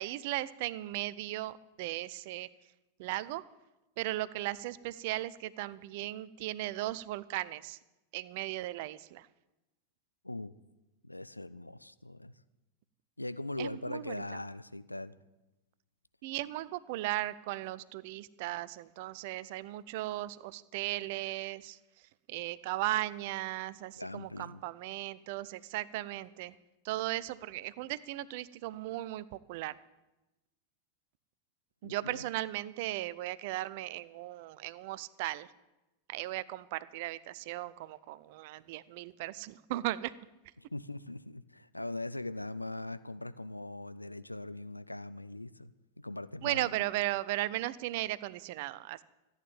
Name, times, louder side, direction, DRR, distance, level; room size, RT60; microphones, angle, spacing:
voice 1, 0.0-2.5 3.0-3.4 4.0-7.8 8.1-9.3 13.6-14.2 16.2-21.8 22.3-26.6 26.8-29.8 31.8-35.5 36.1-40.1 46.4-49.0, right 16 dB, 50° right, 18 dB, 0.6 m, -37 dB
voice 2, 11.0-12.3 13.2-15.2 23.9-24.6 31.8-32.3 40.6-45.7 46.0-46.8, left 2 dB, 85° left, 15 dB, 0.5 m, -41 dB
14.5 x 9.1 x 8.9 m, 1.0 s
figure-of-eight pair, 90°, 0 cm